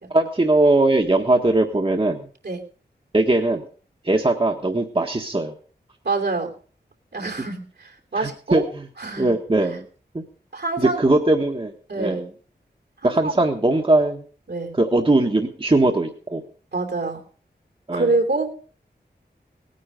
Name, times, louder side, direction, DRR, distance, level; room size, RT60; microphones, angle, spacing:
voice 1, 0.1-2.3 3.1-3.6 4.0-5.5 8.2-8.6 9.2-9.9 10.1-10.2 10.8-12.3 13.0-14.2 14.8-16.4 17.9-18.1, right 2 dB, 30° right, 2 dB, 1.6 m, -20 dB
voice 2, 6.0-6.5 7.1-8.6 9.0-9.3 10.5-11.1 11.9-12.2 13.0-13.4 14.5-14.7 16.7-17.2 17.9-18.5, right 3 dB, 70° right, 2 dB, 3.0 m, -26 dB
18.0 x 9.6 x 5.2 m, 0.42 s
wide cardioid pair, 70°, 18 cm